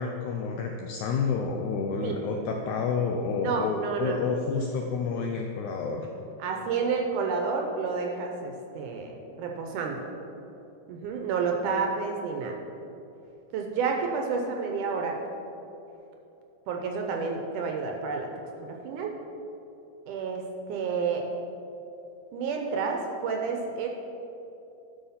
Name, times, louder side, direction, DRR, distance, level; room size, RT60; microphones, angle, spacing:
voice 1, 0.0-6.1, left 5 dB, 80° left, 2 dB, 1.7 m, -29 dB
voice 2, 3.4-4.3 5.7-6.0 6.4-10.0 10.9-12.6 13.5-15.2 16.7-18.3 18.7-19.1 20.1-20.4 20.7-21.3 22.3-23.9, right 5 dB, 75° right, 2 dB, 2.1 m, -30 dB
11.5 x 5.7 x 5.7 m, 2.9 s
omnidirectional pair, 4.1 m